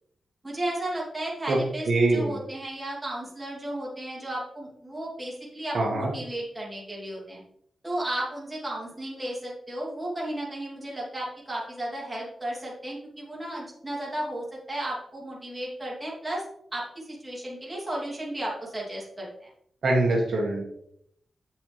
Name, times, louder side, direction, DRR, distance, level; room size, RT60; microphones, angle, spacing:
voice 1, 0.4-7.4 7.8-16.4 16.7-19.5, right 1 dB, 10° right, -5 dB, 3.1 m, -34 dB
voice 2, 1.9-2.4 5.7-6.1 19.8-20.6, right 2 dB, 65° right, -2 dB, 2.0 m, -23 dB
8.1 x 7.0 x 3.4 m, 0.70 s
wide cardioid pair, 125°, 0 cm